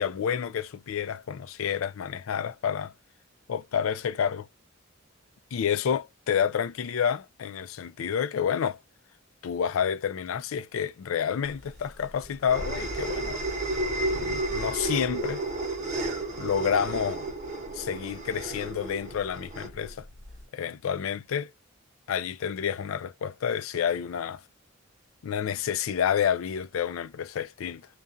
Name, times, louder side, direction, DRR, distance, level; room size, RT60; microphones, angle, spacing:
voice 1, 0.0-2.9 3.5-4.5 5.5-8.8 9.4-13.4 14.1-15.4 16.4-17.3 17.7-20.1 20.5-21.5 22.1-24.4 25.2-27.9, left 8 dB, 80° left, 0.4 m, -29 dB
sound 1, 11.6-20.4, right 2 dB, 35° right, 0.8 m, -32 dB
2.4 x 2.2 x 2.5 m
head